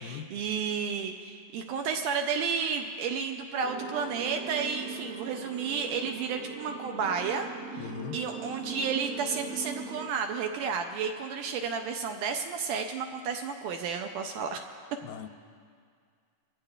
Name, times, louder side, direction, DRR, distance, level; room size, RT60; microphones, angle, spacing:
voice 1, 0.0-14.6, right 6 dB, 80° right, 4 dB, 2.0 m, -32 dB
sound 1, 3.6-10.1, right 5 dB, 60° right, 2.4 m, -40 dB
voice 2, 7.8-8.2 15.0-15.3, left 8 dB, 85° left, 8 dB, 2.4 m, -39 dB
23.0 x 15.5 x 2.5 m, 2.1 s
omnidirectional pair, 4.2 m